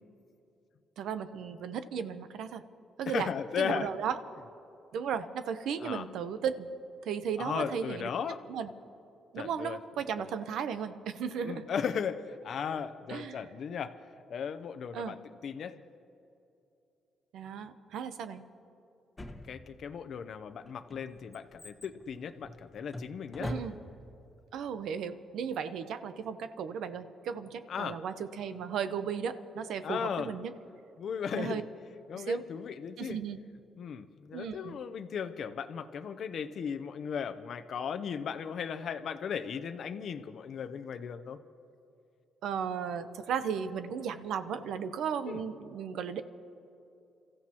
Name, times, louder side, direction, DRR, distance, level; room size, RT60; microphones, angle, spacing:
voice 1, 1.0-2.6 3.0-3.3 3.6-4.2 4.9-6.7 7.0-8.1 8.5-8.7 9.3-11.7 13.1-13.5 14.9-15.2 17.3-18.4 23.4-23.8 24.5-30.5 31.3-31.6 32.1-32.4 33.0-33.4 34.3-34.8 42.4-46.2, right 7 dB, 80° right, 11 dB, 0.8 m, -35 dB
voice 2, 3.1-3.9 5.8-6.1 7.4-8.4 9.4-9.8 10.2-10.3 11.4-13.9 14.3-15.2 15.4-15.8 19.5-23.5 27.7-28.0 29.8-30.3 31.0-31.6 32.1-33.2 33.8-41.4 45.3-45.4, left 7 dB, 60° left, 9 dB, 0.6 m, -36 dB
Drawer open or close, 19.2-20.0 20.7-24.1 24.4-24.5, left 1 dB, 20° left, 1.3 m, -43 dB
29.5 x 14.5 x 2.9 m, 2.7 s
cardioid pair, 90°, 0 cm